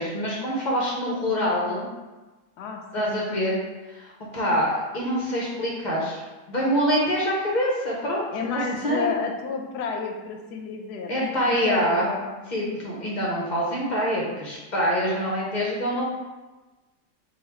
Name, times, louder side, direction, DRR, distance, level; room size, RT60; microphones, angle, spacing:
voice 1, 0.0-1.9 2.9-3.6 3.9-6.2 6.5-9.1 11.1-12.1 12.5-16.0, equal, 45° left, -4 dB, 0.5 m, -25 dB
voice 2, 2.6-3.4 8.3-12.4, left 5 dB, 80° left, 3 dB, 1.1 m, -31 dB
3.9 x 2.3 x 4.3 m, 1.2 s
omnidirectional pair, 1.7 m